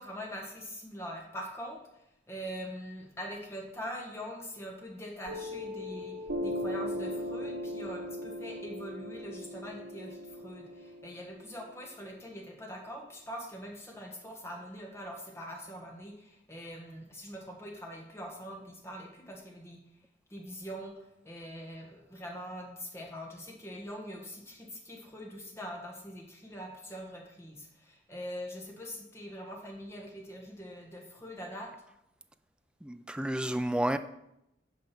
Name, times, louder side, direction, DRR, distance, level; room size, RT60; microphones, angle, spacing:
voice 1, 0.0-19.8 20.3-31.7, equal, 15° left, 1.5 m, -43 dB
Piano, 5.3-12.3, left 1 dB, 85° right, 1.1 m, -38 dB
voice 2, 32.8-34.0, right 1 dB, 5° right, 0.3 m, -30 dB
9.1 x 5.2 x 6.0 m
head